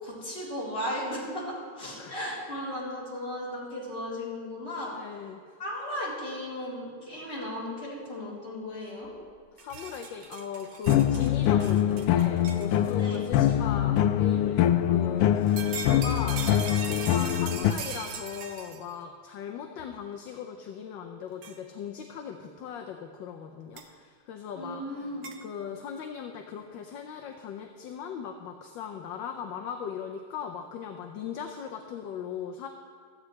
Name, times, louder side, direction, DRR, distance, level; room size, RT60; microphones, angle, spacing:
voice 1, 0.0-5.0 5.6-9.1 13.0-13.2 24.6-25.3, left 1 dB, 30° left, -7 dB, 4.2 m, -35 dB
voice 2, 4.9-5.4 9.6-16.4 16.9-25.1 25.4-32.7, left 7 dB, 70° left, 4 dB, 1.3 m, -39 dB
sound 1, 9.0-9.2 9.4-13.2 14.0-14.1 15.3-18.9 19.8-19.9 21.4-21.6 23.8-23.9 25.2-25.4, right 6 dB, 70° right, 1.7 m, -40 dB
sound 2, 10.9-17.7, left 11 dB, 90° left, 1.5 m, -24 dB
16.5 x 13.5 x 3.3 m, 2.2 s
omnidirectional pair, 2.3 m